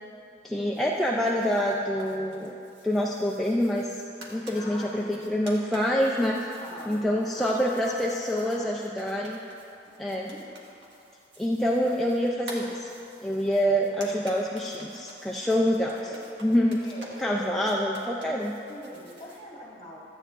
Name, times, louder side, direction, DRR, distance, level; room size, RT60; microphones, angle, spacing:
voice 1, 0.4-2.5 2.8-4.0 4.3-6.6 6.9-9.4 10.0-10.3 11.4-12.9 13.2-16.0 16.4-16.8 17.2-18.5, equal, ahead, -3 dB, 0.4 m, -26 dB
sound 1, 0.7-19.4, right 1 dB, 75° right, 1.5 m, -50 dB
voice 2, 4.5-5.1 6.5-8.7 9.9-10.5 15.9-16.3 16.8-18.2 18.7-20.0, equal, 30° left, -5 dB, 1.9 m, -43 dB
14.0 x 8.8 x 2.5 m, 2.7 s
head